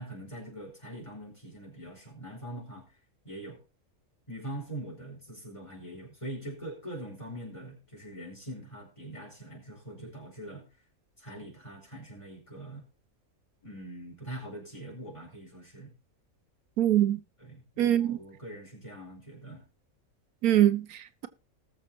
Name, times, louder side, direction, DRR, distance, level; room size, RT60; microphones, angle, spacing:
voice 1, 0.0-2.8 3.2-3.6 4.3-10.7 11.2-12.9 13.6-15.9 17.4-19.6, right 1 dB, 20° left, 5.1 m, -43 dB
voice 2, 16.8-17.2 17.8-18.2 20.4-21.3, right 12 dB, 80° right, 1.2 m, -23 dB
19.5 x 7.1 x 3.0 m
omnidirectional pair, 1.5 m